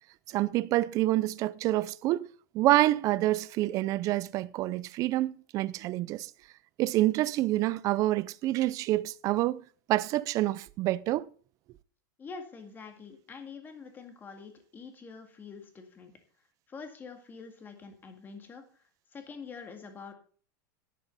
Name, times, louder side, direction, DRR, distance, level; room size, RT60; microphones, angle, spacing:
voice 1, 0.3-2.3 2.5-6.3 6.8-9.6 9.9-11.3, right 16 dB, 30° right, 0.4 m, -27 dB
voice 2, 12.2-16.1 16.7-18.6 19.1-20.1, left 5 dB, 15° left, 2.0 m, -45 dB
10.5 x 10.5 x 4.1 m
supercardioid pair, 155°, 11 cm